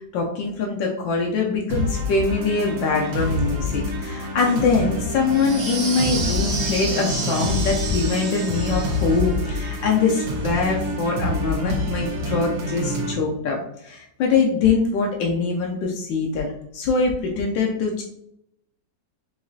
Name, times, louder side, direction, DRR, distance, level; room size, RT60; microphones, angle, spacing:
voice 1, 0.0-16.5 16.7-18.0, left 4 dB, 85° left, -1 dB, 1.3 m, -23 dB
sound 1, 1.7-13.1, left 1 dB, 85° right, 1.5 m, -27 dB
sound 2, 5.3-9.3, right 4 dB, 60° right, 0.8 m, -31 dB
4.8 x 2.4 x 2.6 m, 0.76 s
omnidirectional pair, 2.0 m